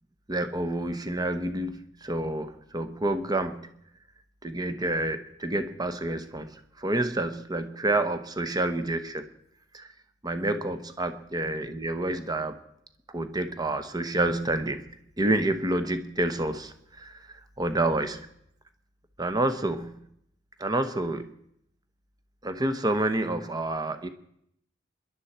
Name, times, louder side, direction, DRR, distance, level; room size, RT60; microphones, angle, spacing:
voice 1, 0.3-3.7 4.4-9.3 9.7-9.9 10.2-12.6 13.1-14.9 15.2-17.2 17.6-18.3 19.2-20.0 20.6-21.3 22.4-24.1, right 2 dB, 20° right, 9 dB, 1.0 m, -28 dB
26.5 x 11.5 x 4.4 m, 0.73 s
head